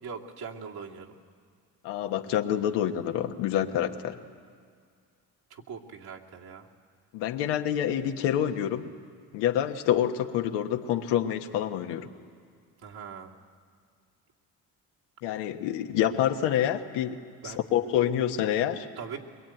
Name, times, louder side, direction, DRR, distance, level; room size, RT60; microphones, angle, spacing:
voice 1, 0.0-1.2 5.5-6.7 12.8-13.3 17.4-17.6 19.0-19.2, right 6 dB, 65° right, -1 dB, 2.7 m, -41 dB
voice 2, 1.8-4.2 7.1-8.9 9.3-12.1 15.2-18.9, left 10 dB, 85° left, 5 dB, 1.4 m, -27 dB
23.0 x 22.5 x 9.1 m, 2.1 s
supercardioid pair, 80°, 40 cm